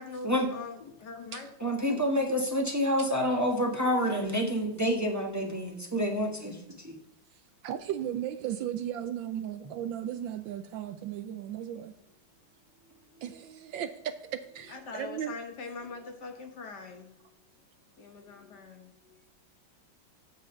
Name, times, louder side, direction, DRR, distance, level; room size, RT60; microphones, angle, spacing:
voice 1, 0.0-1.7 14.7-17.1 18.0-18.9, left 4 dB, 55° left, 1.6 m, -42 dB
voice 2, 1.6-7.0 18.4-18.6, equal, 10° right, 1.0 m, -28 dB
voice 3, 7.6-11.9 13.2-15.3, right 10 dB, 75° right, 1.2 m, -36 dB
8.2 x 4.9 x 6.7 m
omnidirectional pair, 2.3 m